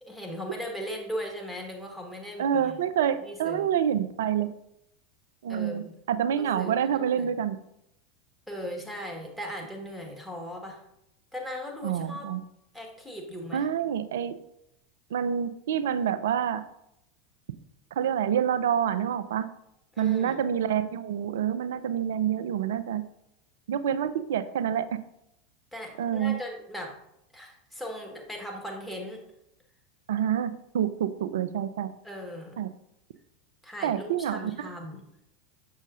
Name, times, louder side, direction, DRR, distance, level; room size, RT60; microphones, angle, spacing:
voice 1, 0.0-2.8 3.2-3.7 5.5-6.0 6.4-7.3 8.5-10.8 11.3-12.3 12.7-13.6 19.9-20.4 25.7-26.9 27.3-29.2 32.0-32.6 33.6-35.0, equal, 5° left, 0 dB, 1.5 m, -38 dB
voice 2, 2.4-4.5 5.4-7.6 11.8-12.4 13.5-14.3 15.1-16.6 17.9-19.5 20.0-23.0 23.7-25.0 26.0-26.4 30.1-31.9 32.6-32.7 33.8-34.7, right 9 dB, 70° right, 13 dB, 0.4 m, -27 dB
6.3 x 6.3 x 2.5 m, 0.80 s
figure-of-eight pair, 85°, 0 cm